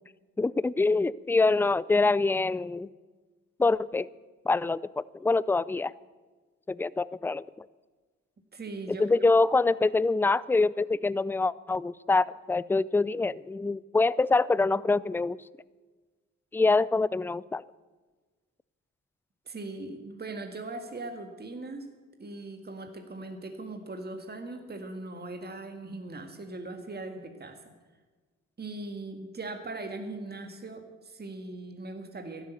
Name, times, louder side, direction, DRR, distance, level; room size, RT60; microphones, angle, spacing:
voice 1, 0.4-2.9 3.6-4.1 4.5-5.9 6.7-7.7 9.0-15.4 16.5-17.6, left 3 dB, 5° left, 20 dB, 0.4 m, -25 dB
voice 2, 8.5-9.0 19.5-21.9 22.2-27.7 28.6-32.5, right 2 dB, 30° right, 5 dB, 1.9 m, -40 dB
12.5 x 11.0 x 8.1 m, 1.3 s
supercardioid pair, 55°, 33 cm